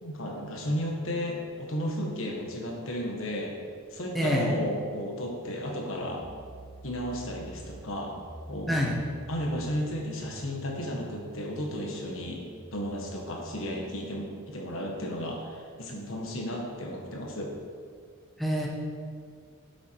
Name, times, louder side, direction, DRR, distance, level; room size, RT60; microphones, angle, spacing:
voice 1, 0.0-3.6 3.9-6.2 6.8-8.1 8.5-8.8 9.3-12.4 12.7-17.5, equal, 65° left, 0 dB, 1.6 m, -33 dB
voice 2, 4.1-4.5 8.7-9.0 18.4-18.7, equal, ahead, -3 dB, 1.0 m, -26 dB
sound 1, 6.2-13.7, right 1 dB, 80° right, 2.5 m, -48 dB
8.2 x 7.2 x 4.7 m, 2.1 s
head